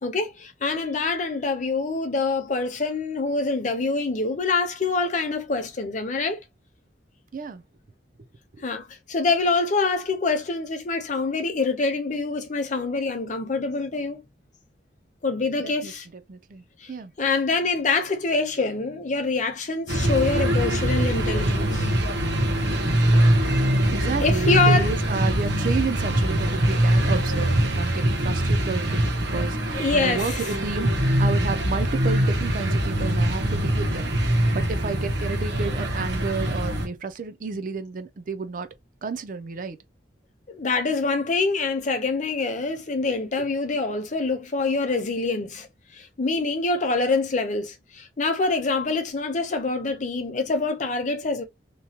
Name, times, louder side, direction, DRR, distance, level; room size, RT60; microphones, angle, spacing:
voice 1, 0.0-6.4 8.6-14.2 15.2-16.1 16.8-16.9 17.2-21.9 24.2-24.9 29.7-30.4 40.5-45.7 45.9-51.4, left 3 dB, 45° left, 0.7 m, -25 dB
voice 2, 15.6-15.9 16.3-17.1 23.9-34.1 34.5-38.7 39.0-39.8, right 4 dB, 50° right, 0.5 m, -31 dB
sound 1, 19.9-36.9, right 1 dB, 75° right, 0.9 m, -23 dB
3.0 x 2.2 x 2.8 m
head